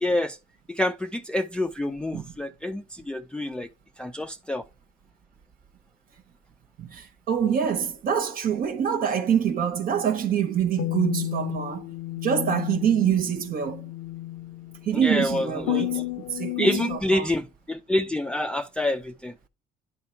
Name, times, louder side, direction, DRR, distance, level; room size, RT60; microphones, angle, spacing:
voice 1, 0.0-0.4 0.7-3.7 4.0-4.6 14.9-15.8 16.6-19.3, left 1 dB, 5° left, 0.4 m, -27 dB
voice 2, 6.8-11.9 12.2-13.8 14.8-17.3, right 8 dB, 60° right, 0.8 m, -25 dB
sound 1, 10.8-17.0, left 18 dB, 85° left, 0.6 m, -32 dB
10.5 x 3.6 x 4.3 m
cardioid pair, 110°, 17 cm